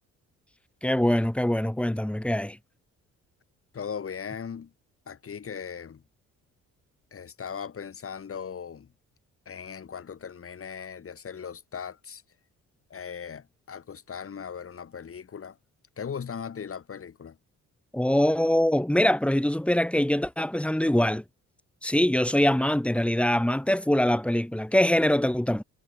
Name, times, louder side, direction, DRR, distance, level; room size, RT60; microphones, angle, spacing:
voice 1, 0.8-2.6 17.9-21.2 21.8-25.6, left 1 dB, 5° left, 1.6 m, -23 dB
voice 2, 3.7-4.7 5.1-6.0 7.1-8.9 9.5-12.2 12.9-15.6 16.0-17.4, left 7 dB, 45° left, 7.2 m, -38 dB
cardioid pair, 90°, 30 cm